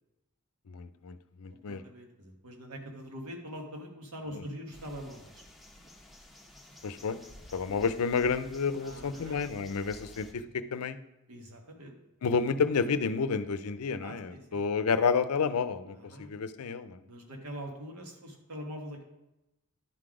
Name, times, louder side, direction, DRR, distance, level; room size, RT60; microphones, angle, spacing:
voice 1, 0.7-1.8 4.3-4.4 6.8-7.2 7.5-10.4 10.7-11.0 12.2-17.0, left 5 dB, 80° left, 13 dB, 0.5 m, -30 dB
voice 2, 1.5-5.4 8.8-9.4 11.3-11.9 14.0-14.6 15.9-16.3 17.0-19.0, equal, 90° right, 2 dB, 1.5 m, -43 dB
sound 1, 4.7-10.3, left 1 dB, ahead, 0.8 m, -52 dB
10.5 x 3.9 x 4.9 m, 0.92 s
head